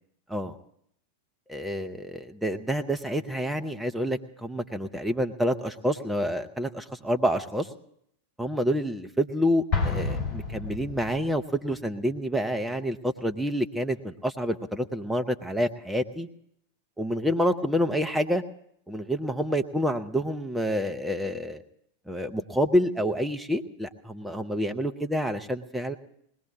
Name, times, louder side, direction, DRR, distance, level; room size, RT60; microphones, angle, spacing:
voice 1, 1.5-7.7 8.4-16.3 17.0-18.4 18.9-21.6 22.1-26.0, equal, 5° right, 4 dB, 0.9 m, -28 dB
Explosion, 9.7-11.4, left 4 dB, 40° left, 2.4 m, -29 dB
21.0 x 19.0 x 3.1 m, 0.71 s
figure-of-eight pair, 90°, 0 cm